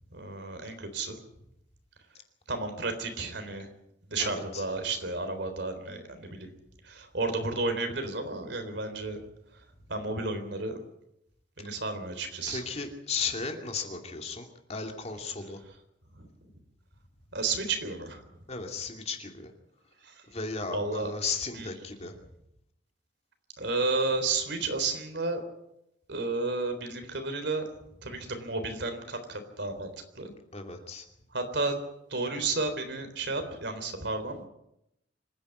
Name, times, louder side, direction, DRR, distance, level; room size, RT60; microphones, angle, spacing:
voice 1, 0.1-1.2 2.5-3.7 4.1-6.5 6.8-9.2 9.5-9.6 9.9-10.8 11.6-12.6 16.2-16.3 17.3-18.2 20.0-20.2 20.7-21.1 21.5-21.7 23.6-25.4 26.1-27.6 28.0-29.9 30.2-30.3 31.3-31.8 32.1-34.5, right 3 dB, 65° right, 7 dB, 3.8 m, -32 dB
voice 2, 4.2-4.6 11.7-11.8 12.5-15.6 18.5-19.5 20.3-22.2 30.5-31.0, left 4 dB, 35° left, 4 dB, 2.6 m, -35 dB
26.0 x 10.5 x 9.5 m, 0.82 s
head